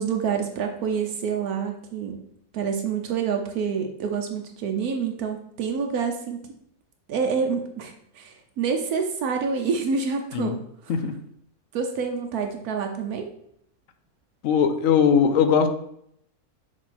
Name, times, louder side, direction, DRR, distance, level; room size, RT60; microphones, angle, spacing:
voice 1, 0.0-2.2 2.5-6.4 7.1-10.6 10.8-10.9 11.7-13.3, right 6 dB, 80° right, 4 dB, 1.2 m, -27 dB
voice 2, 14.4-15.7, left 7 dB, 65° left, 8 dB, 1.0 m, -20 dB
6.2 x 3.8 x 4.2 m, 0.70 s
omnidirectional pair, 1.6 m